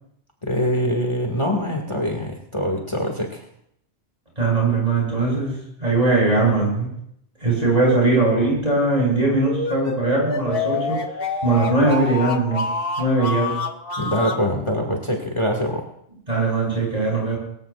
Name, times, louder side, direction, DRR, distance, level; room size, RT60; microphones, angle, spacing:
voice 1, 0.4-3.5 14.0-15.9, equal, 25° left, 0 dB, 2.0 m, -24 dB
voice 2, 4.4-6.9 7.4-12.6 13.0-13.5 16.3-17.4, right 2 dB, 35° right, -3 dB, 8.2 m, -20 dB
sound 1, 9.5-14.4, left 3 dB, 55° left, 1.6 m, -27 dB
24.0 x 15.0 x 2.5 m, 0.72 s
omnidirectional pair, 1.1 m